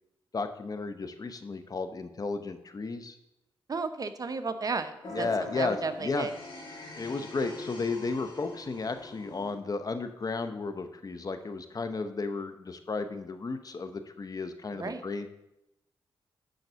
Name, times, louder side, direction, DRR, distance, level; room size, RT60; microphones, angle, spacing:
voice 1, 0.3-3.1 5.1-6.3 6.9-15.3, left 4 dB, 40° left, 9 dB, 0.8 m, -34 dB
voice 2, 3.7-6.3 14.8-15.0, right 4 dB, 40° right, 9 dB, 0.8 m, -33 dB
sound 1, 5.0-9.5, left 2 dB, 65° left, 3.2 m, -43 dB
10.5 x 4.0 x 6.8 m, 0.87 s
cardioid pair, 70°, 9 cm